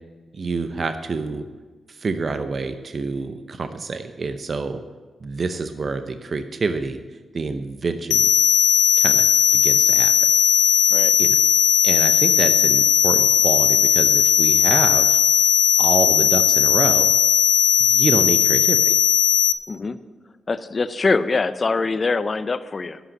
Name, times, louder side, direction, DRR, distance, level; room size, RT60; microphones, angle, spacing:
voice 1, 0.3-1.5 1.9-4.8 5.2-7.0 7.3-8.3 9.0-9.3 9.5-10.1 11.2-11.4 11.8-15.2 15.8-17.1 17.8-19.0, right 4 dB, 50° right, 9 dB, 0.7 m, -27 dB
sound 1, 8.1-19.5, left 11 dB, 90° left, 0.4 m, -17 dB
voice 2, 19.7-20.0 20.5-23.0, left 4 dB, 45° left, 13 dB, 0.7 m, -23 dB
11.0 x 6.0 x 8.3 m, 1.4 s
supercardioid pair, 45°, 0 cm